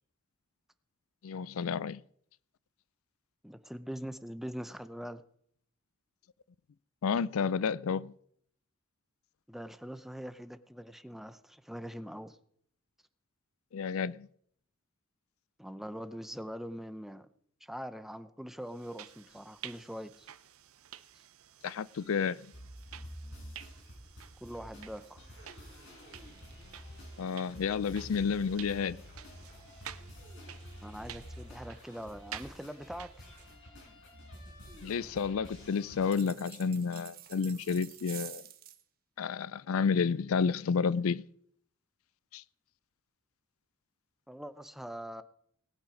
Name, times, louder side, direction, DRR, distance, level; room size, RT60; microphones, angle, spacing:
voice 1, 1.2-2.0 7.0-8.1 13.7-14.3 21.6-22.4 27.2-29.0 34.8-38.4 39.2-41.2 42.3-42.4, left 6 dB, 75° left, 0.4 m, -30 dB
voice 2, 3.4-5.2 9.5-12.4 15.6-17.3 17.6-20.3 24.4-25.2 30.8-33.3 44.3-45.2, equal, ahead, 0.7 m, -43 dB
sound 1, 18.7-33.6, right 11 dB, 85° right, 0.7 m, -51 dB
sound 2, 22.5-36.2, equal, 60° left, 6.7 m, -49 dB
sound 3, 36.1-38.8, right 11 dB, 45° right, 1.1 m, -48 dB
19.0 x 8.9 x 5.0 m
head